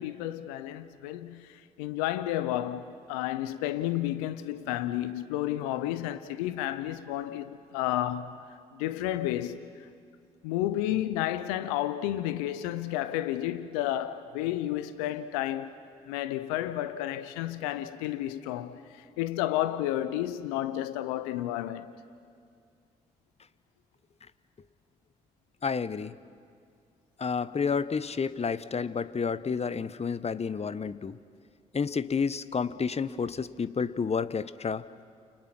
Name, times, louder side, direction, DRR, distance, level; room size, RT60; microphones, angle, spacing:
voice 1, 0.0-8.4 8.7-9.7 10.4-15.7 16.1-21.9, left 13 dB, 80° left, 0.9 m, -31 dB
voice 2, 25.6-26.1 27.2-31.2 31.7-34.8, left 5 dB, 35° left, 1.1 m, -30 dB
29.5 x 29.0 x 6.1 m
hypercardioid pair, 45°, 19 cm